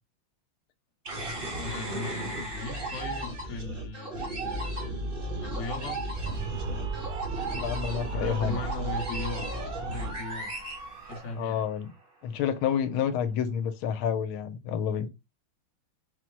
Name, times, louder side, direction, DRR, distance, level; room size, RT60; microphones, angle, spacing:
sound 1, 1.1-11.7, right 1 dB, 40° right, 0.8 m, -35 dB
voice 1, 1.6-6.1 8.1-9.5 9.8-10.5 11.0-11.6, left 3 dB, 45° left, 1.0 m, -38 dB
sound 2, 5.6-11.2, right 4 dB, 75° right, 1.0 m, -38 dB
voice 2, 7.5-8.6 11.3-11.9 12.2-15.1, left 8 dB, 85° left, 1.5 m, -29 dB
4.4 x 2.1 x 4.5 m
omnidirectional pair, 2.3 m